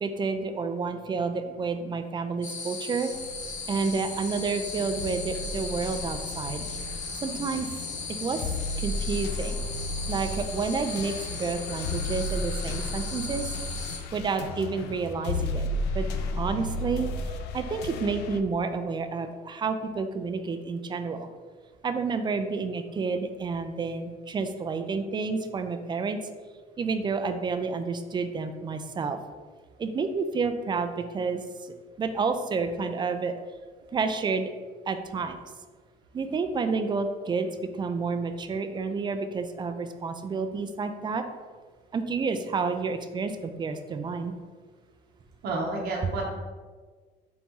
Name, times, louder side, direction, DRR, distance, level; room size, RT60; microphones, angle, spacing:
voice 1, 0.0-3.1 3.7-6.6 7.2-7.7 8.2-9.6 10.1-13.5 14.1-15.7 15.9-16.0 16.4-17.1 17.5-21.3 21.8-26.2 26.8-29.2 29.8-31.4 32.0-33.3 33.9-34.5 34.9-35.4 36.1-37.5 37.7-41.2 41.9-44.3, right 4 dB, 25° right, 8 dB, 0.3 m, -30 dB
sound 1, 2.4-14.0, left 4 dB, 45° left, 0.7 m, -37 dB
sound 2, 3.1-18.4, left 2 dB, 85° left, 0.4 m, -34 dB
voice 2, 45.4-46.2, right 2 dB, 70° right, -2 dB, 0.8 m, -30 dB
4.0 x 3.0 x 3.6 m, 1.5 s
cardioid pair, 110°, 17 cm